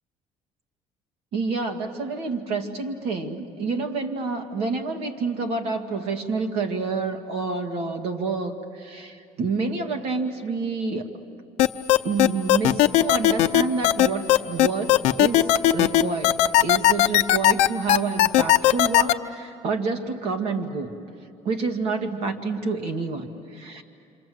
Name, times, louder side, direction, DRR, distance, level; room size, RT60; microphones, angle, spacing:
voice 1, 1.3-11.1 12.0-14.9 15.2-16.4 16.6-20.9 21.5-23.8, right 4 dB, 60° right, 5 dB, 2.0 m, -28 dB
sound 1, 11.6-19.1, left 14 dB, 80° left, 0.7 m, -17 dB
27.5 x 26.5 x 7.8 m, 2.7 s
cardioid pair, 170°, 12 cm